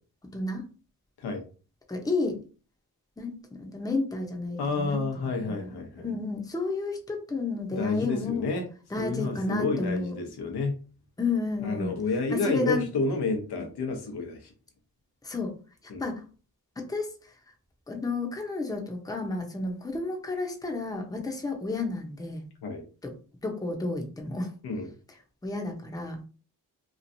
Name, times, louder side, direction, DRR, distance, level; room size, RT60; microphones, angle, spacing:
voice 1, 0.3-0.6 1.9-2.4 3.2-8.4 8.9-10.1 11.2-11.9 12.3-12.8 15.2-15.5 15.8-16.2 16.8-17.3 17.9-22.5 23.0-23.1 23.4-24.5 25.4-26.2, left 3 dB, 10° left, 2 dB, 0.7 m, -31 dB
voice 2, 4.6-6.1 7.7-8.7 9.0-10.7 11.6-14.5 15.9-16.1 22.6-22.8 24.6-24.9, left 3 dB, 85° left, 4 dB, 0.9 m, -30 dB
3.0 x 2.4 x 2.6 m, 0.36 s
cardioid pair, 75°, 38 cm